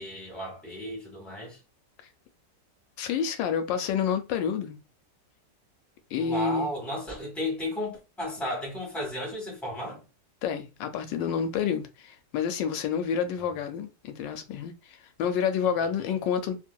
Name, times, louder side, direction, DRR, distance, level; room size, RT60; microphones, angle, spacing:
voice 1, 0.0-1.6 6.1-10.0 15.6-16.2, left 1 dB, ahead, 1.3 m, -34 dB
voice 2, 3.0-4.8 6.1-6.7 10.4-16.6, left 7 dB, 85° left, 1.3 m, -29 dB
3.0 x 2.7 x 2.2 m
omnidirectional pair, 1.9 m